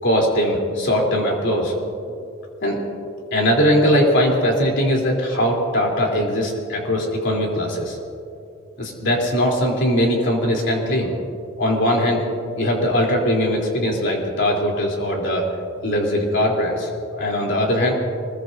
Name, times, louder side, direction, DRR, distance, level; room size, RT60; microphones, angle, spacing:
voice 1, 0.0-1.8 2.6-2.8 3.3-8.0 8.8-11.1 11.6-12.2 12.6-15.4 15.8-16.9 17.2-17.9, equal, 60° left, -1 dB, 3.5 m, -20 dB
24.5 x 21.0 x 2.7 m, 2.5 s
head